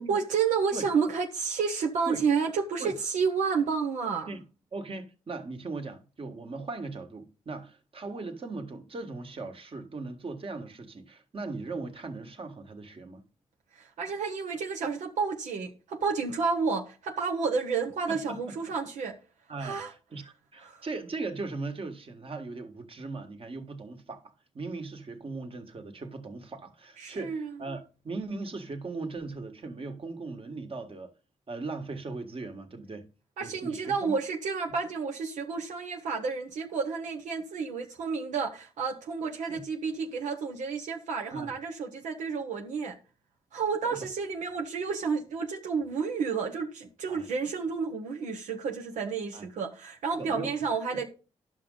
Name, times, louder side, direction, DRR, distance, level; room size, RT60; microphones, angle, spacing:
voice 1, 0.0-4.3 13.7-19.2 19.6-19.9 20.6-20.9 27.0-27.5 33.4-43.0 43.5-51.1, right 5 dB, 90° right, 0.9 m, -30 dB
voice 2, 4.7-13.2 18.1-18.4 19.5-19.8 20.1-31.1 31.5-33.1 33.4-34.2 39.5-39.6 41.3-41.5 47.1-47.2 49.3-49.5 50.2-50.5, right 3 dB, 50° right, 1.6 m, -38 dB
10.5 x 6.3 x 3.9 m
cardioid pair, 65°, 12 cm